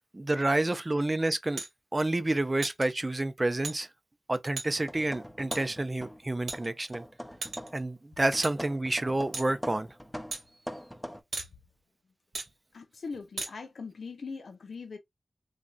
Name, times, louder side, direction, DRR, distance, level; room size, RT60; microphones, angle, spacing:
voice 1, 0.1-1.6 1.9-3.9 4.3-7.0 7.7-9.9, right 2 dB, 35° right, 0.5 m, -29 dB
sound 1, 1.6-1.7 2.6-2.8 3.6-3.8 4.6-4.7 5.5-5.6 6.5-6.9 7.4-7.8 8.4-8.5 9.3-9.5 10.3-10.4 11.3-11.5 12.3-12.5 13.4-13.5, right 3 dB, 85° right, 1.3 m, -36 dB
sound 2, 4.7-6.2 6.5-7.9 8.3-11.2, equal, 5° left, 0.7 m, -42 dB
voice 2, 12.7-15.0, left 4 dB, 80° left, 0.5 m, -41 dB
3.2 x 2.6 x 2.2 m
cardioid pair, 40°, 0 cm